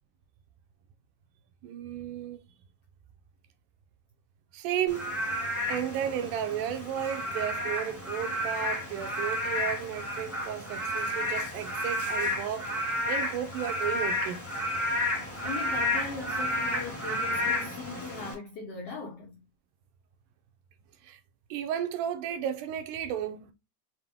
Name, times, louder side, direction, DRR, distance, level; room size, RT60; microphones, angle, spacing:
voice 1, 1.6-2.4 4.5-5.1 5.7-14.4 21.0-21.2 21.5-23.5, right 9 dB, 80° right, 2.0 m, -33 dB
Frog / Rain, 4.9-18.3, left 1 dB, 10° left, 0.9 m, -31 dB
voice 2, 15.4-19.4, left 4 dB, 75° left, 1.4 m, -39 dB
5.8 x 2.2 x 3.4 m
omnidirectional pair, 3.8 m